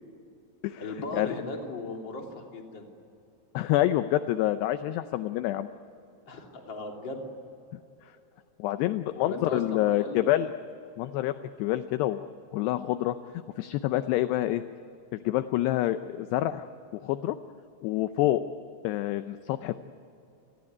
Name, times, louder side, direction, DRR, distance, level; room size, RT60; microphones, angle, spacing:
voice 1, 0.8-2.9 6.3-7.3 9.2-10.3, left 2 dB, 30° left, 1 dB, 3.1 m, -37 dB
voice 2, 3.5-5.7 7.7-7.8 8.6-10.5 11.0-13.2 13.6-14.6 15.1-16.7 16.9-17.4 17.8-18.4 18.8-19.8, left 14 dB, 80° left, 10 dB, 2.5 m, -27 dB
29.5 x 20.0 x 9.7 m, 2.7 s
omnidirectional pair, 5.6 m